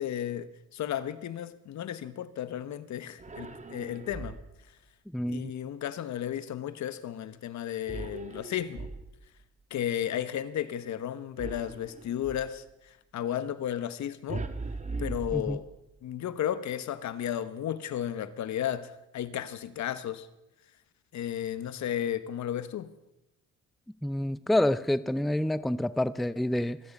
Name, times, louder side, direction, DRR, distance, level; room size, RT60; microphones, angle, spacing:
voice 1, 0.0-4.4 5.3-8.9 9.7-14.5 15.0-15.6 16.0-20.3 21.1-22.9, left 10 dB, 70° left, 1.1 m, -34 dB
sound 1, 3.2-4.7 7.9-9.4 11.4-12.6 14.3-16.0, right 3 dB, 25° right, 1.3 m, -39 dB
voice 2, 5.1-5.5 15.3-15.6 24.0-26.8, left 1 dB, ahead, 0.5 m, -28 dB
25.0 x 9.6 x 5.4 m
cardioid pair, 90°, 30 cm